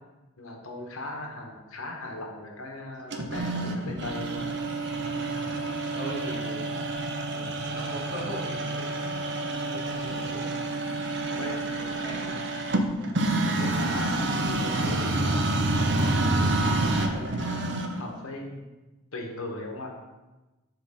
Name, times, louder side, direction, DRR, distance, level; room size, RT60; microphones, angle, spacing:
voice 1, 0.4-4.5 11.4-11.6 13.6-18.7 19.1-19.9, left 2 dB, 75° left, 2 dB, 1.0 m, -38 dB
sound 1, 3.1-18.1, right 2 dB, 55° right, 0.6 m, -28 dB
voice 2, 5.3-6.7 7.3-10.5 11.2-12.4 13.0-13.2, right 1 dB, 20° right, -8 dB, 2.0 m, -41 dB
7.5 x 3.9 x 4.1 m, 1.1 s
head